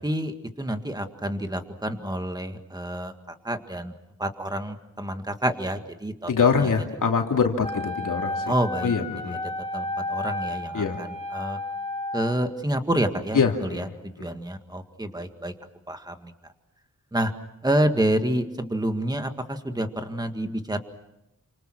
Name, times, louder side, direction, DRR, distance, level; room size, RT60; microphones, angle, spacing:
voice 1, 0.0-3.1 3.4-3.9 4.2-6.7 8.5-8.9 9.3-9.4 9.7-11.6 12.1-15.5 15.9-16.3 17.1-17.3 17.6-20.8, right 1 dB, 15° right, 7 dB, 1.9 m, -28 dB
voice 2, 6.3-8.5 8.8-9.4 10.7-11.0 13.3-14.3, left 5 dB, 90° left, 2 dB, 2.8 m, -24 dB
Wind instrument woodwind instrument, 7.6-12.4, left 2 dB, 20° left, 2.1 m, -32 dB
29.5 x 26.5 x 6.2 m, 0.88 s
wide cardioid pair, 125°, 31 cm